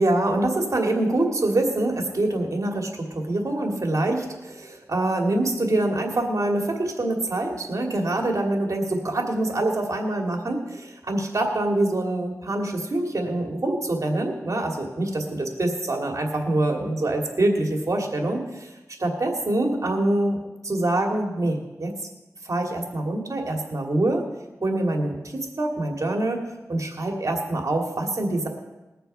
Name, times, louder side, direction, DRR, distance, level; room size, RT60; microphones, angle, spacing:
voice 1, 0.0-18.7 19.0-20.4 20.6-21.9 22.4-24.2 24.6-26.4 26.7-28.5, right 2 dB, 55° right, 2 dB, 2.4 m, -25 dB
20.5 x 6.8 x 5.5 m, 1.1 s
wide cardioid pair, 70°, 6 cm